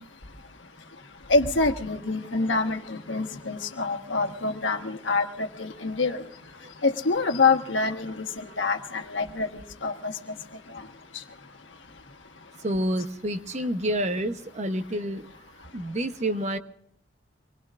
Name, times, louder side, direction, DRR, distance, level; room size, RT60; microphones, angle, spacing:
voice 1, 1.3-6.2 6.8-10.1, left 3 dB, 85° left, 6 dB, 1.3 m, -26 dB
voice 2, 12.6-15.2 15.7-16.6, right 1 dB, 35° right, 9 dB, 0.8 m, -28 dB
25.5 x 21.0 x 2.5 m, 0.71 s
head